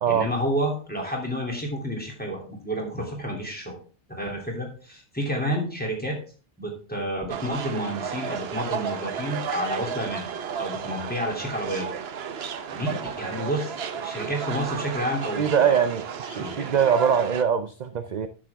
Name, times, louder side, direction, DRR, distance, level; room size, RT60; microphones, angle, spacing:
voice 1, 0.1-3.8 4.1-6.2 6.6-10.3 10.6-11.9 12.7-15.8 16.4-16.8, equal, 10° left, -1 dB, 2.9 m, -30 dB
sound 1, 7.3-17.4, right 7 dB, 65° right, 1.0 m, -33 dB
voice 2, 15.4-18.3, right 7 dB, 50° right, 10 dB, 0.6 m, -23 dB
10.5 x 7.5 x 3.5 m, 0.39 s
omnidirectional pair, 1.1 m